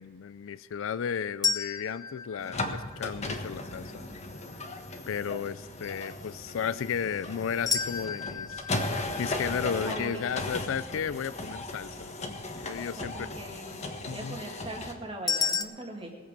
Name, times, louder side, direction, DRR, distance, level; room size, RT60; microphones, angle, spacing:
voice 1, 0.0-4.1 5.1-8.7 8.9-13.3 14.1-14.4, left 7 dB, 85° left, 17 dB, 0.4 m, -34 dB
sound 1, 1.4-3.5 7.7-10.8 15.3-15.6, left 5 dB, 20° left, 0.7 m, -33 dB
sound 2, 2.4-14.9, left 2 dB, 35° left, 1.4 m, -37 dB
voice 2, 9.9-10.5 12.8-13.8 14.1-16.2, right 1 dB, 30° right, 0 dB, 2.2 m, -40 dB
20.0 x 7.9 x 5.2 m, 1.5 s
head